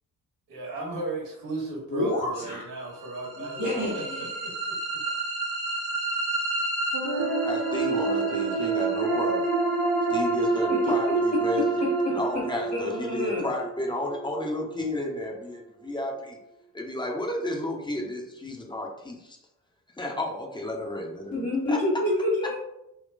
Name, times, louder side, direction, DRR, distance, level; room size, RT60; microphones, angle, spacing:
voice 1, 0.5-5.0, right 2 dB, 65° right, -3 dB, 1.3 m, -36 dB
voice 2, 1.9-2.6 3.6-4.3 10.7-10.9 11.8-12.2 12.7-13.5 21.3-22.5, left 1 dB, 70° left, -9 dB, 1.0 m, -28 dB
sound 1, 3.1-15.1, right 3 dB, 40° right, 0.7 m, -28 dB
voice 3, 7.4-9.4 10.1-11.8 12.1-16.4 16.7-19.4 20.0-21.8, left 1 dB, 10° left, 0 dB, 0.5 m, -32 dB
3.7 x 2.1 x 2.5 m, 0.84 s
figure-of-eight pair, 40°, 48 cm